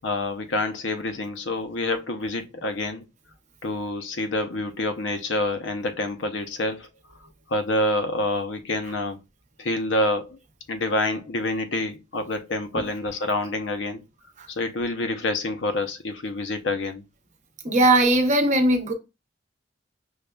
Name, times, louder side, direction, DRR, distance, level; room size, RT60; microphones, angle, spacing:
voice 1, 0.0-3.0 3.6-6.9 7.5-9.2 9.6-10.4 10.7-14.0 14.5-17.0, left 2 dB, 80° left, 0.6 m, -27 dB
voice 2, 17.6-18.9, right 1 dB, 40° right, 0.8 m, -19 dB
6.3 x 2.3 x 2.2 m
head